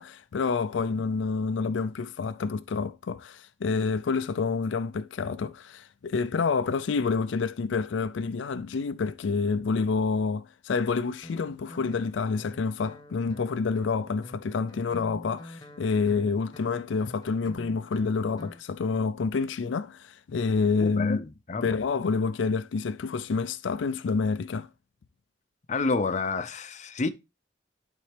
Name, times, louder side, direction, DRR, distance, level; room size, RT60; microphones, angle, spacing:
voice 1, 0.0-21.2 21.6-24.7, left 4 dB, 85° left, 0.4 m, -28 dB
Guitar, 11.2-18.6, left 1 dB, 20° left, 1.3 m, -47 dB
voice 2, 20.8-21.8 25.7-27.1, left 3 dB, 40° left, 0.6 m, -29 dB
11.5 x 4.1 x 3.3 m
head